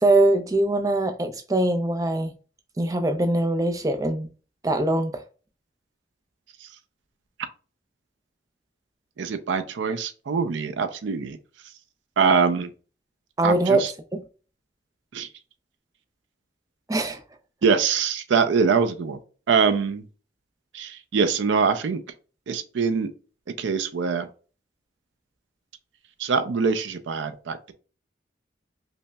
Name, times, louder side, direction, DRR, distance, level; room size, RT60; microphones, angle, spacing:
voice 1, 0.0-2.3 2.8-4.3 4.6-5.2 13.4-13.8 14.1-14.2 16.9-17.2, right 2 dB, 20° right, 0.3 m, -22 dB
voice 2, 9.2-11.4 12.2-12.7 13.4-13.9 15.1-15.3 17.6-19.2 19.5-20.1 20.7-22.0 22.5-23.1 23.6-24.3 26.2-27.7, right 5 dB, 85° right, 0.4 m, -23 dB
5.3 x 2.0 x 2.2 m
head